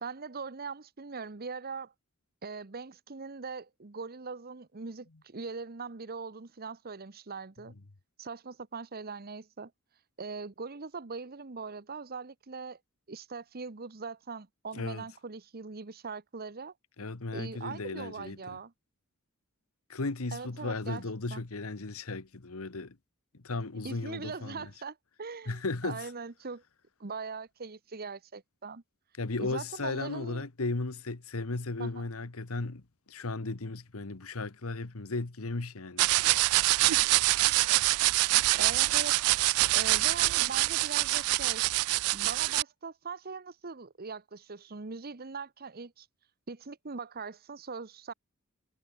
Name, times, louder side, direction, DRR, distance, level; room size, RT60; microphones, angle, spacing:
voice 1, 0.0-1.9 2.4-7.7 8.2-9.7 10.2-12.8 13.1-16.7 17.3-18.7 20.3-21.0 21.3-21.4 23.8-26.6 27.0-28.8 29.4-30.5 31.8-32.1 38.6-39.2 39.7-41.6 42.1-46.1 46.5-48.1, right 4 dB, 45° right, 1.0 m, -41 dB
voice 2, 14.7-15.0 17.0-18.6 19.9-23.0 23.3-24.7 25.5-26.1 29.2-32.8 33.1-36.1, left 3 dB, 70° left, 1.3 m, -35 dB
sound 1, 36.0-42.6, right 19 dB, 80° right, 0.3 m, -25 dB
head